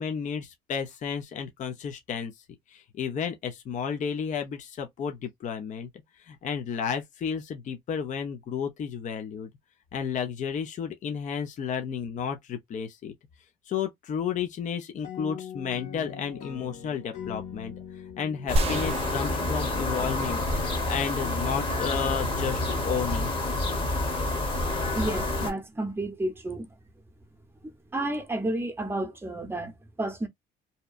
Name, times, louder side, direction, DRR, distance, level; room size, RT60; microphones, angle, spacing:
voice 1, 0.0-2.3 2.7-5.9 6.3-9.5 9.9-13.1 13.7-17.7 18.2-23.3, left 7 dB, 45° left, 0.6 m, -32 dB
sound 1, 15.0-19.7, left 8 dB, 85° left, 1.4 m, -42 dB
sound 2, 18.5-25.5, left 2 dB, 30° left, 1.0 m, -28 dB
sound 3, 18.6-20.8, right 1 dB, 35° right, 0.4 m, -32 dB
voice 2, 24.8-26.7 27.6-30.3, right 1 dB, 15° right, 0.8 m, -31 dB
2.8 x 2.1 x 2.4 m
cardioid pair, 110°, 17 cm